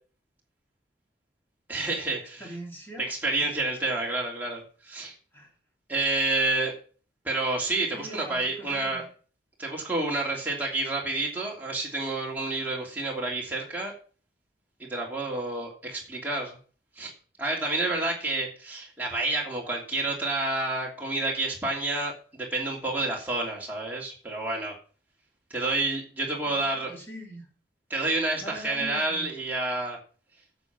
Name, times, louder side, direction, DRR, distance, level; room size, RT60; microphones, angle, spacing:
voice 1, 1.7-2.5 3.0-5.1 5.9-6.7 7.2-9.0 9.6-13.9 14.8-16.6 17.0-17.1 17.4-24.7 25.5-26.9 27.9-30.0, right 2 dB, 10° right, -3 dB, 2.9 m, -29 dB
voice 2, 2.4-3.1 3.4-3.5 5.3-5.5 7.9-9.0 26.5-27.5 28.4-29.3, equal, 10° left, -1 dB, 3.1 m, -42 dB
9.6 x 7.2 x 6.1 m, 0.41 s
head